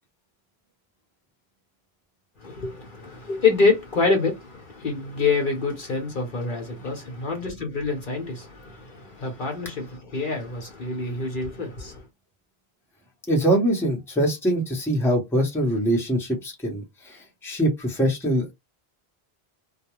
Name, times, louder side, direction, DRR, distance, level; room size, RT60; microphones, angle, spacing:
voice 1, 2.4-12.0, left 4 dB, 55° left, 0.9 m, -26 dB
voice 2, 13.3-18.5, right 1 dB, 5° left, 0.8 m, -23 dB
2.3 x 2.2 x 3.0 m
omnidirectional pair, 1.1 m